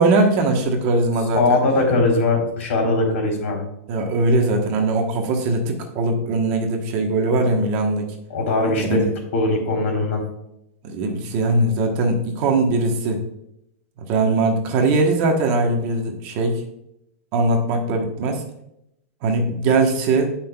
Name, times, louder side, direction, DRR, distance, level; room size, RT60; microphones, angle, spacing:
voice 1, 0.0-1.6 3.9-8.0 8.9-9.1 10.9-13.2 14.1-16.6 17.3-18.4 19.2-20.3, right 2 dB, 30° right, 3 dB, 1.2 m, -20 dB
voice 2, 1.3-3.6 8.3-9.0 9.3-10.2, left 2 dB, 70° left, 1 dB, 3.3 m, -20 dB
17.0 x 5.7 x 2.3 m, 0.81 s
supercardioid pair, 175°, 7 cm